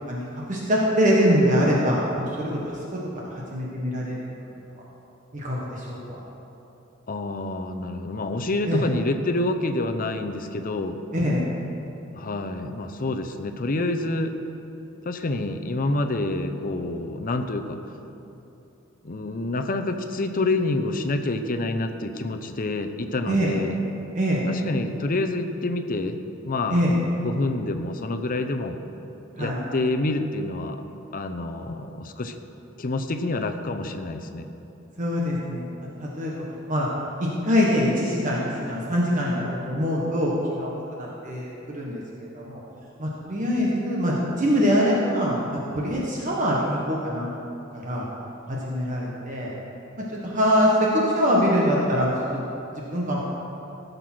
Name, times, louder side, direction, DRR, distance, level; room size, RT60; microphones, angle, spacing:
voice 1, 0.1-4.2 5.3-6.0 8.6-8.8 11.1-11.4 23.3-23.6 24.1-24.5 26.7-26.9 29.4-29.6 35.0-35.7 36.0-36.3 36.7-36.9 37.2-40.3 40.6-42.6 43.0-47.3 47.7-48.1 48.5-49.5 50.0-52.4 52.9-53.2, equal, 40° right, -4 dB, 1.4 m, -24 dB
voice 2, 7.1-11.0 12.1-14.4 15.0-17.8 19.0-23.8 24.5-26.2 26.5-26.9 27.2-28.8 29.4-30.8 31.1-32.4 32.8-34.5, left 2 dB, 45° left, 7 dB, 0.7 m, -27 dB
15.5 x 6.8 x 6.1 m, 2.9 s
head